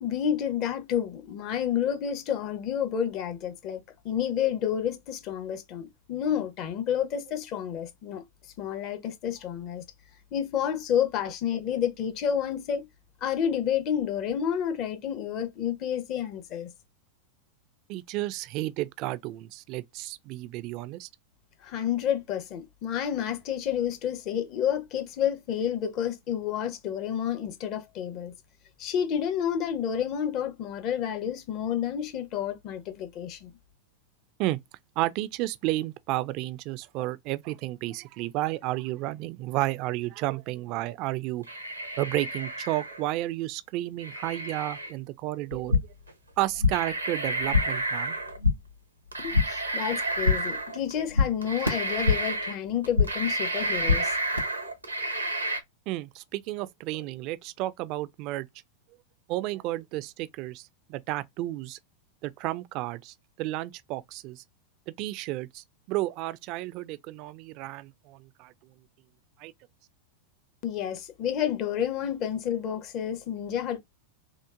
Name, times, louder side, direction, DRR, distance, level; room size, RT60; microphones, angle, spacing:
voice 1, 0.0-8.2 8.6-9.8 10.3-12.9 13.2-16.7 21.6-28.3 28.8-33.5 49.2-54.1 70.6-73.8, left 9 dB, 40° left, 0.6 m, -30 dB
voice 2, 17.9-21.1 34.4-34.6 35.0-41.4 42.0-45.8 46.4-48.2 55.9-58.5 59.3-61.8 62.2-64.4 65.0-68.5 69.4-69.5, right 17 dB, 40° right, 0.3 m, -32 dB
sound 1, 41.4-43.1 44.0-44.9 46.1-46.2 46.7-48.4 49.1-50.9 51.4-52.6 52.8-55.6, right 2 dB, 80° right, 0.6 m, -31 dB
sound 2, 45.5-46.1 46.3-47.0 47.2-47.9 48.2-48.8 49.1-49.7 50.0-50.6 50.9-52.4 52.7-53.3 53.6-54.4, left 4 dB, 90° left, 0.7 m, -27 dB
3.0 x 2.1 x 2.4 m
figure-of-eight pair, 90°, 0 cm